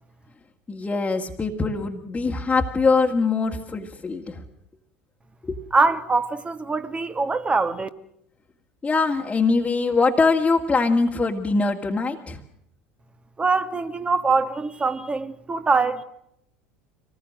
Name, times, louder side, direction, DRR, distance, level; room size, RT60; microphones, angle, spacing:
voice 1, 0.7-4.4 5.4-5.6 8.8-12.4, left 4 dB, 20° left, 2.0 m, -22 dB
voice 2, 5.7-7.9 13.4-16.0, right 4 dB, 20° right, 1.9 m, -23 dB
26.0 x 20.0 x 6.4 m
figure-of-eight pair, 70°, 6 cm